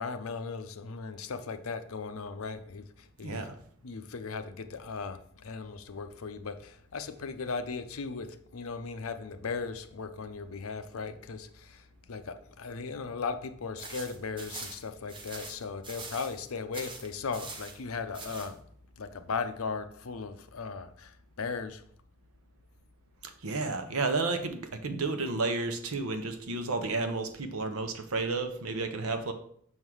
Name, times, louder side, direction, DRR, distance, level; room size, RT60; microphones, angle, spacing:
voice 1, 0.0-3.5 3.8-18.6 19.0-21.8, left 4 dB, 80° left, 10 dB, 0.6 m, -37 dB
voice 2, 3.2-3.5 23.2-29.3, right 3 dB, 85° right, 7 dB, 0.9 m, -32 dB
sound 1, 13.8-16.4 16.7-17.8 18.1-18.5, right 3 dB, 20° right, 0.8 m, -43 dB
6.3 x 3.6 x 6.2 m, 0.62 s
head